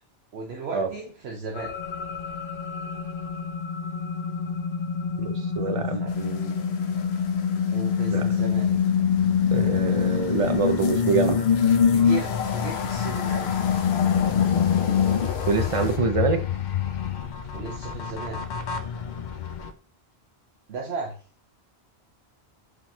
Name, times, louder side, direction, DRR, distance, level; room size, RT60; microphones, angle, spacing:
voice 1, 0.3-1.8 5.7-6.1 7.7-8.7 11.9-13.5 17.5-18.4 20.7-21.2, right 3 dB, 75° right, 1.0 m, -35 dB
sound 1, 1.6-19.7, left 7 dB, 60° left, 0.5 m, -25 dB
voice 2, 5.2-6.5 8.1-8.4 9.5-11.4 15.5-16.4, right 4 dB, 45° right, 0.5 m, -26 dB
sound 2, 6.1-16.0, left 5 dB, 80° left, 0.9 m, -38 dB
4.9 x 3.7 x 2.7 m
omnidirectional pair, 1.1 m